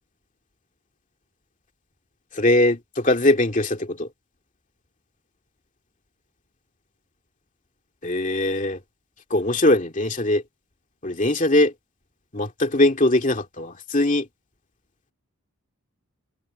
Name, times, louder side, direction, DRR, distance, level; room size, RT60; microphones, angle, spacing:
voice 1, 2.3-4.1 8.0-8.8 9.3-10.4 11.0-11.7 12.3-14.3, left 1 dB, 35° left, 2.2 m, -21 dB
head